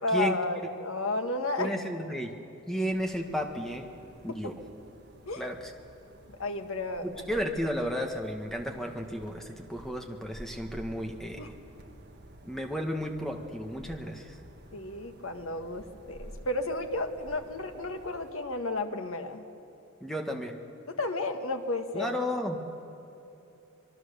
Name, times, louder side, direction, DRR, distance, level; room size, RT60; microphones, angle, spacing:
voice 1, 0.0-1.7 4.3-4.4 5.3-5.5 6.3-7.1 11.4-11.5 14.7-19.5 20.9-22.1, left 2 dB, 70° left, 6 dB, 1.6 m, -32 dB
voice 2, 1.6-2.3 2.7-3.9 4.2-4.5 5.4-5.6 7.0-11.4 12.4-14.3 20.0-20.6 21.9-22.6, equal, ahead, 3 dB, 1.6 m, -33 dB
sound 1, 2.8-18.3, right 1 dB, 50° right, 1.4 m, -51 dB
25.0 x 22.0 x 6.9 m, 2.9 s
head